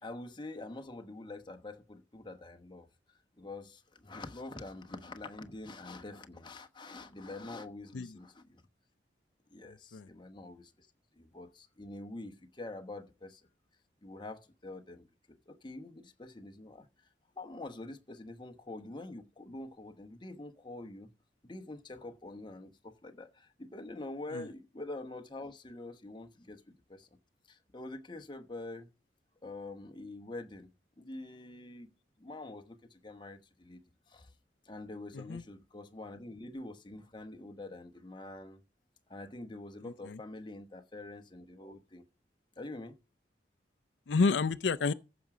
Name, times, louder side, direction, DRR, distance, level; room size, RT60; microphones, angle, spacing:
voice 1, 0.0-8.6 9.5-10.9 11.1-13.5 14.0-17.1 17.3-21.1 21.4-27.1 27.5-28.9 29.4-30.7 31.0-31.9 32.2-33.8 34.1-34.3 34.6-38.6 39.1-42.0 42.6-43.0, left 2 dB, 25° left, 1.1 m, -46 dB
voice 2, 9.7-10.1 24.3-24.5 35.1-35.4 39.8-40.2 44.1-44.9, left 4 dB, 75° left, 0.5 m, -31 dB
15.0 x 6.1 x 5.0 m
head